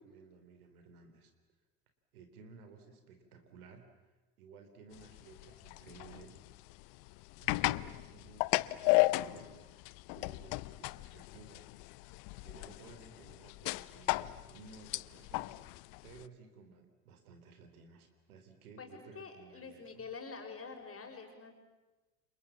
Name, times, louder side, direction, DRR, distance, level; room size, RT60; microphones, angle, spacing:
voice 1, 0.0-1.3 2.1-6.4 7.4-11.7 12.4-20.0, right 5 dB, 70° right, 7 dB, 3.8 m, -56 dB
sound 1, 4.9-16.2, left 22 dB, 55° left, 0.8 m, -35 dB
voice 2, 18.8-21.5, left 5 dB, 30° left, 4 dB, 6.0 m, -47 dB
29.0 x 27.0 x 7.4 m, 1.2 s
figure-of-eight pair, 70°, 45 cm